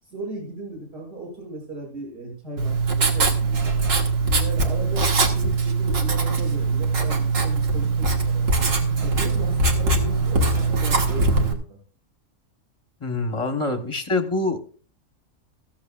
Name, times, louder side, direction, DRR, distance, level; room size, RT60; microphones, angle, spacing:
voice 1, 0.0-3.7 4.1-8.7 9.0-11.8, right 2 dB, 45° right, -3 dB, 6.6 m, -37 dB
Writing, 2.6-11.5, right 3 dB, 65° right, 1.9 m, -21 dB
voice 2, 13.0-14.6, left 3 dB, 25° left, 7 dB, 1.0 m, -25 dB
15.0 x 14.0 x 2.4 m, 0.40 s
omnidirectional pair, 1.5 m